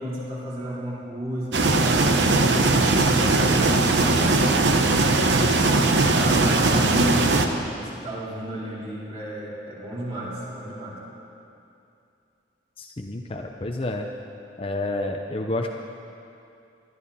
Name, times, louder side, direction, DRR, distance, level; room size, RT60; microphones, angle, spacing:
voice 1, 0.0-5.6 6.0-7.3 7.7-11.0, right 1 dB, 30° right, -8 dB, 3.9 m, -32 dB
sound 1, 1.5-7.5, right 2 dB, 70° right, 0.9 m, -19 dB
voice 2, 12.8-14.1 14.6-15.7, left 2 dB, 30° left, 3 dB, 0.7 m, -29 dB
21.0 x 12.5 x 4.2 m, 2.6 s
head